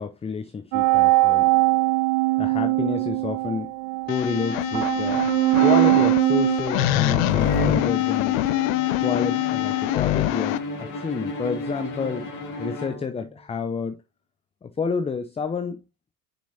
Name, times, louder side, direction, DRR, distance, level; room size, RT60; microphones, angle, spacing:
voice 1, 0.0-1.5 2.4-3.7 4.1-5.3 5.6-8.4 9.0-12.3 12.6-14.0 14.6-15.8, left 5 dB, 15° left, 0.6 m, -29 dB
sound 1, 0.7-7.6, right 20 dB, 65° right, 0.7 m, -21 dB
sound 2, 4.1-10.6, left 17 dB, 65° left, 0.7 m, -24 dB
Bowed string instrument, 7.4-13.4, left 1 dB, 45° left, 2.4 m, -32 dB
7.0 x 6.2 x 2.8 m
hypercardioid pair, 80°, 44 cm